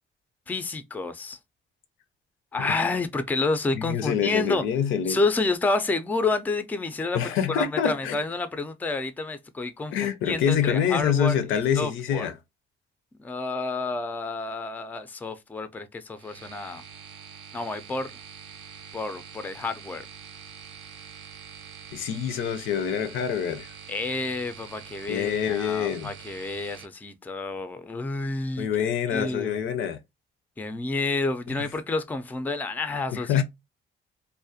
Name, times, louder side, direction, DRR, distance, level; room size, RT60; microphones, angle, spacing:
voice 1, 0.5-1.4 2.5-4.7 5.1-7.2 7.5-12.3 13.2-16.8 17.5-18.1 18.9-20.0 23.9-29.6 30.6-33.4, left 3 dB, 10° left, 0.3 m, -29 dB
voice 2, 3.7-5.2 7.1-8.2 9.9-12.3 21.9-23.7 25.1-26.1 28.6-30.0 31.5-31.6 33.1-33.4, left 8 dB, 80° left, 0.5 m, -26 dB
sound 1, 16.2-26.8, right 8 dB, 70° right, 0.5 m, -45 dB
2.4 x 2.1 x 2.6 m
cardioid pair, 90°, 20 cm